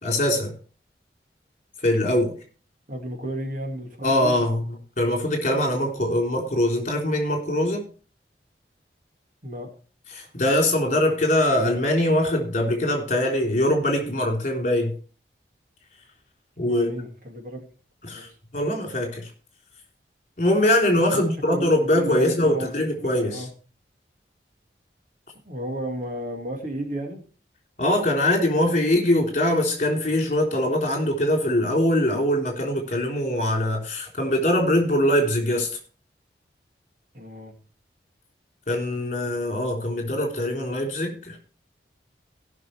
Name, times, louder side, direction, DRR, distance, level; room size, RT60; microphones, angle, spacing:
voice 1, 0.0-0.5 1.8-2.3 4.0-4.6 5.0-7.8 10.1-14.9 16.6-16.9 18.0-18.3 18.5-19.3 20.4-23.5 27.8-35.7 38.7-41.4, left 1 dB, 45° left, 3.5 m, -22 dB
voice 2, 2.9-4.3 9.4-9.7 16.7-17.6 18.2-18.3 21.1-23.5 25.4-27.2 37.1-37.6, right 1 dB, 50° right, 2.3 m, -33 dB
17.5 x 6.0 x 4.5 m
head